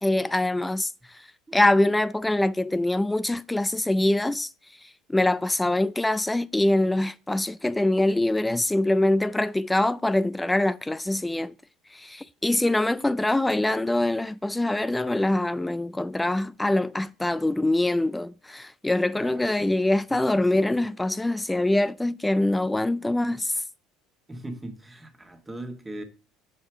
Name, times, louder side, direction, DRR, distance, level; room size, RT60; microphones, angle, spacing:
voice 1, 0.0-1.3 1.5-4.5 4.8-11.5 11.9-23.6, left 1 dB, 10° left, 0.3 m, -24 dB
voice 2, 19.1-19.8 20.1-20.7 24.3-26.0, right 1 dB, 15° right, 1.7 m, -40 dB
7.1 x 5.6 x 4.5 m
supercardioid pair, 85°, 0 cm